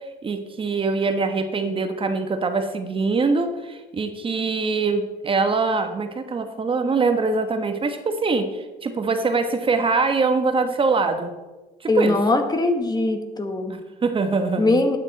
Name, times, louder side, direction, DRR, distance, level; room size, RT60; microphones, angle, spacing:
voice 1, 0.2-11.3 11.8-12.2 13.7-15.0, right 4 dB, 30° right, 7 dB, 1.1 m, -23 dB
voice 2, 11.9-13.8 14.6-15.0, left 2 dB, 25° left, 7 dB, 1.2 m, -21 dB
12.0 x 8.9 x 4.0 m, 1.2 s
cardioid pair, 110°, 17 cm